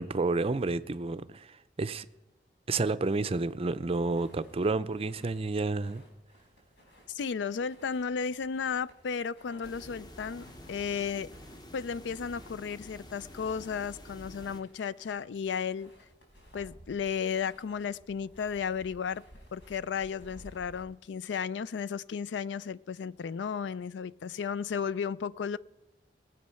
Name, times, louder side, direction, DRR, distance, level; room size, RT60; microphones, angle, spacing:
voice 1, 0.0-2.1 2.7-6.0, right 3 dB, 35° right, 0.5 m, -30 dB
sound 1, 4.0-20.8, equal, 90° left, 4.3 m, -57 dB
voice 2, 7.1-11.3 11.7-15.9 16.5-19.2 19.5-25.6, left 6 dB, 70° left, 0.4 m, -34 dB
sound 2, 9.6-14.6, left 1 dB, 25° left, 0.9 m, -49 dB
19.0 x 7.8 x 5.6 m
head